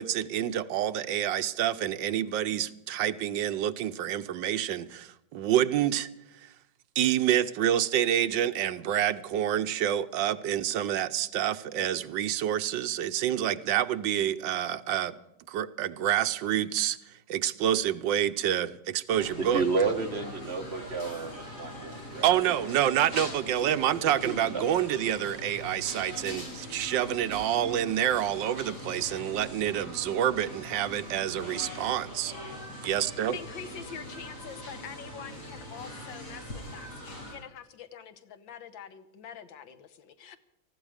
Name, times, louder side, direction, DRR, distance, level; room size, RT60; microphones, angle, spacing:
voice 1, 0.0-6.1 7.0-15.1 15.5-17.0 17.3-19.6 22.2-32.3 32.8-33.4, right 11 dB, 80° right, 12 dB, 1.4 m, -28 dB
sound 1, 19.1-37.3, left 1 dB, 60° left, 6.2 m, -42 dB
voice 2, 19.4-22.3 23.7-23.8 24.2-24.6, right 4 dB, 35° right, 5 dB, 1.6 m, -31 dB
voice 3, 33.3-40.4, left 7 dB, 80° left, 11 dB, 1.8 m, -45 dB
19.5 x 15.0 x 5.0 m, 0.85 s
omnidirectional pair, 2.0 m